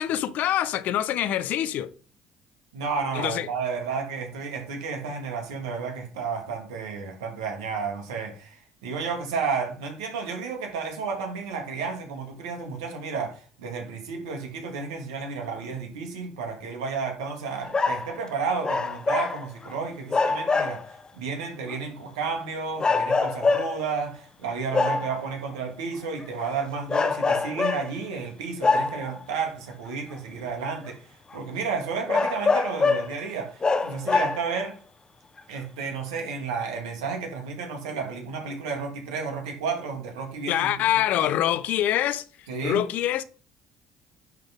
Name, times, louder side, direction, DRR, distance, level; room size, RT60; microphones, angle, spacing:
voice 1, 0.0-1.9 3.1-3.5 40.5-42.2 42.6-43.2, left 12 dB, 65° left, 0.6 m, -25 dB
voice 2, 2.7-34.8 35.5-40.9 42.5-42.8, right 5 dB, 85° right, 1.7 m, -32 dB
sound 1, 17.6-18.2 18.6-19.7 20.1-21.0 21.7-21.8 22.8-23.9 24.7-25.2 26.2-26.5 26.9-28.0 28.6-29.2 30.1-30.2 30.9-31.0 31.3-31.4 32.1-33.2 33.6-34.6 35.4-35.5, left 4 dB, 30° left, 0.6 m, -24 dB
10.0 x 3.7 x 3.5 m
hypercardioid pair, 60°, 3 cm